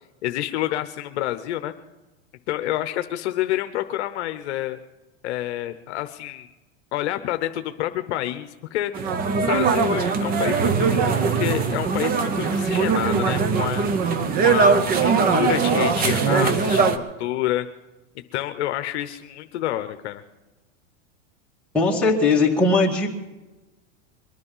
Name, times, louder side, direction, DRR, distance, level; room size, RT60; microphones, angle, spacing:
voice 1, 0.2-1.7 2.5-4.8 5.2-6.5 6.9-8.9 9.4-13.9 14.4-17.7 18.3-20.2, left 14 dB, 65° left, 9 dB, 0.9 m, -28 dB
sound 1, 8.9-17.0, right 5 dB, 25° right, 0.8 m, -21 dB
voice 2, 21.7-23.1, left 3 dB, 5° left, -4 dB, 2.1 m, -19 dB
23.0 x 9.8 x 5.5 m, 1.1 s
supercardioid pair, 140°, 37 cm